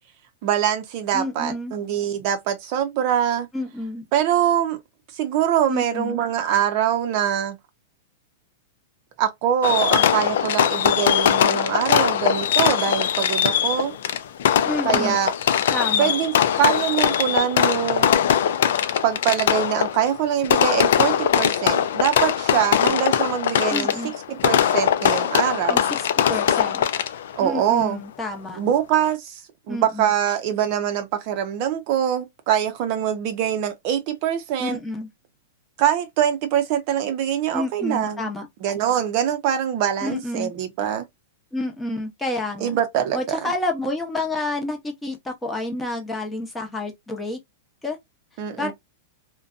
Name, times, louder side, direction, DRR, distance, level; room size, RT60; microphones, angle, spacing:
voice 1, 0.4-3.5 4.1-4.8 5.1-7.6 9.2-13.9 14.8-15.3 16.0-16.3 16.6-18.2 19.0-23.9 24.3-25.8 27.4-28.0 28.6-29.4 29.7-34.8 35.8-38.3 38.6-41.0 42.6-43.4 48.4-48.7, right 10 dB, 45° right, 0.6 m, -23 dB
voice 2, 1.1-1.7 3.5-4.1 5.7-6.2 14.6-15.2 15.7-16.1 23.7-24.1 25.7-25.8 26.2-26.9 27.4-28.6 29.7-30.1 34.6-35.1 37.5-38.5 40.0-40.5 41.5-42.8 43.1-47.4 47.8-48.0 48.6-48.7, left 2 dB, 10° left, 0.8 m, -29 dB
Fireworks, 9.6-27.4, left 9 dB, 70° left, 0.4 m, -21 dB
2.5 x 2.2 x 2.5 m
hypercardioid pair, 145°, 0 cm